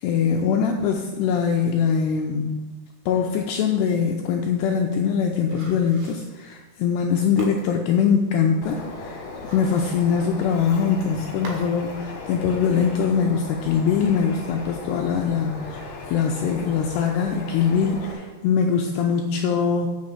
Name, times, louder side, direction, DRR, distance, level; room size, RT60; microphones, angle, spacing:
voice 1, 0.0-2.5 3.1-9.2 9.5-19.9, left 6 dB, 85° left, 2 dB, 2.4 m, -22 dB
sound 1, 4.4-11.8 12.1-12.2, right 1 dB, 65° right, 3.5 m, -43 dB
Bird, 8.6-18.1, left 3 dB, 60° left, 2.2 m, -37 dB
8.2 x 6.4 x 7.2 m, 1.3 s
omnidirectional pair, 5.5 m